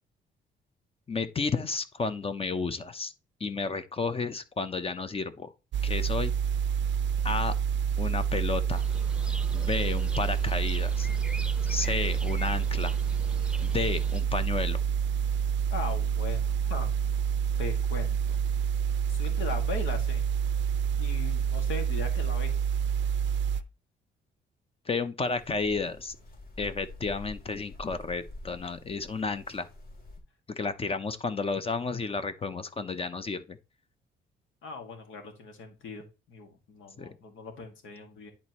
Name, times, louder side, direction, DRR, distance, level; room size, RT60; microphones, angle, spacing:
voice 1, 1.1-3.1 3.4-5.5 5.8-6.3 7.2-7.5 8.0-8.8 9.5-11.1 11.6-12.9 13.6-14.8 24.9-26.2 26.6-29.7 30.6-33.6 37.0-37.1, left 4 dB, 30° left, 0.8 m, -32 dB
sound 1, 5.7-23.6, right 7 dB, 65° right, 0.5 m, -28 dB
sound 2, 8.7-14.2, right 1 dB, 5° right, 0.8 m, -43 dB
voice 2, 15.7-16.9 17.6-18.4 19.1-20.2 21.0-22.5 34.6-38.3, left 4 dB, 80° left, 2.1 m, -39 dB
sound 3, 25.2-30.2, left 1 dB, 50° left, 3.3 m, -47 dB
10.0 x 4.2 x 3.0 m
cardioid pair, 90°, 20 cm